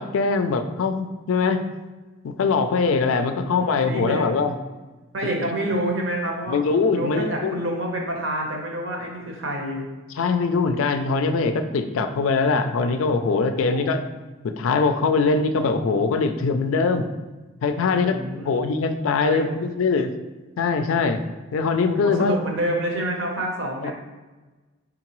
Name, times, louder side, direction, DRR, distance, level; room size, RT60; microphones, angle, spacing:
voice 1, 0.0-1.6 2.2-4.5 5.5-5.6 6.5-7.6 10.2-14.0 14.4-17.1 17.6-20.1 20.6-21.2 21.5-22.4 23.8-23.9, left 4 dB, 85° left, 8 dB, 0.4 m, -22 dB
voice 2, 3.2-4.3 5.1-9.9 13.7-14.0 17.9-18.7 19.2-19.6 21.9-23.9, right 1 dB, 75° right, 1 dB, 0.9 m, -28 dB
3.9 x 3.7 x 3.0 m, 1.2 s
head